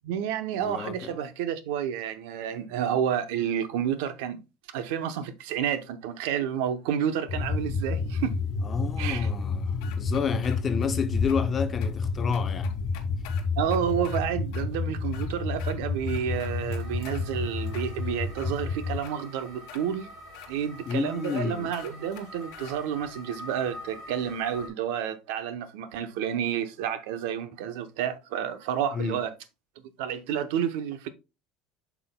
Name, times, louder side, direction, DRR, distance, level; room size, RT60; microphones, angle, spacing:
voice 1, 0.0-4.4 4.7-8.4 9.0-9.3 13.6-20.1 20.5-29.3 30.0-31.1, right 9 dB, 75° right, 0.8 m, -30 dB
voice 2, 0.6-1.1 8.6-12.7 20.9-21.7 28.9-29.2, left 6 dB, 20° left, 0.6 m, -30 dB
sound 1, 7.3-19.0, left 4 dB, 45° left, 0.9 m, -30 dB
sound 2, 9.8-10.9 11.3-11.4 11.8-11.9 12.3-14.2 14.5-14.7 15.0-15.8 16.1-17.2 17.7-18.5 19.0-19.1 19.7-19.8 20.3-20.5 20.9-21.0 21.2-21.4 21.7-22.8, left 10 dB, 65° left, 1.2 m, -46 dB
sound 3, 16.3-24.7, left 1 dB, 40° right, 4.0 m, -46 dB
8.0 x 5.9 x 2.2 m
cardioid pair, 175°, 0 cm